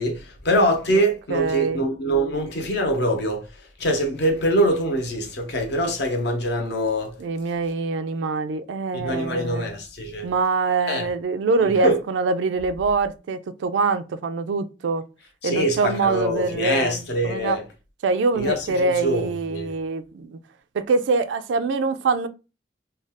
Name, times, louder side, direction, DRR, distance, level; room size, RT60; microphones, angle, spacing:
voice 1, 0.0-7.2 8.9-10.3 10.9-11.1 11.6-12.0 15.4-17.6 18.3-19.7, equal, 65° left, 0.8 m, -24 dB
voice 2, 1.3-1.8 7.2-9.7 10.2-15.0 15.4-17.6 18.0-20.4 20.7-22.3, right 4 dB, 85° right, 0.3 m, -24 dB
2.5 x 2.3 x 3.4 m
head